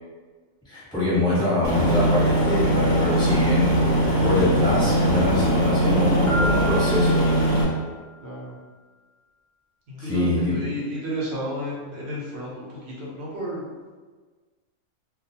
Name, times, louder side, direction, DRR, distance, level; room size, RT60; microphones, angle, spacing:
voice 1, 0.6-3.7 4.2-7.4 10.0-10.6, left 1 dB, 5° left, -11 dB, 1.0 m, -24 dB
Aircraft, 1.6-7.6, right 1 dB, 20° left, 0.5 m, -21 dB
Piano, 6.3-8.2, equal, 65° left, 0.8 m, -32 dB
voice 2, 8.2-8.5 9.9-12.7 13.0-13.6, equal, 60° right, -6 dB, 0.9 m, -32 dB
2.3 x 2.3 x 2.7 m, 1.4 s
omnidirectional pair, 1.4 m